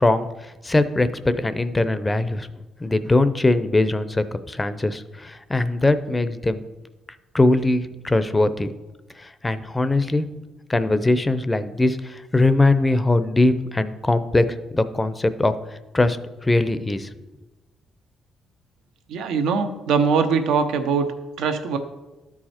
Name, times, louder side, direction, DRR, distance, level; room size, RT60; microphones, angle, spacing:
voice 1, 0.0-2.5 2.8-6.7 7.3-8.7 9.2-10.3 10.7-15.5 15.9-16.2 16.4-17.2, left 2 dB, 20° left, 12 dB, 0.6 m, -21 dB
voice 2, 19.1-21.1 21.4-21.8, right 5 dB, 85° right, 7 dB, 0.8 m, -21 dB
12.5 x 4.8 x 4.4 m, 1.1 s
cardioid pair, 90°, 0 cm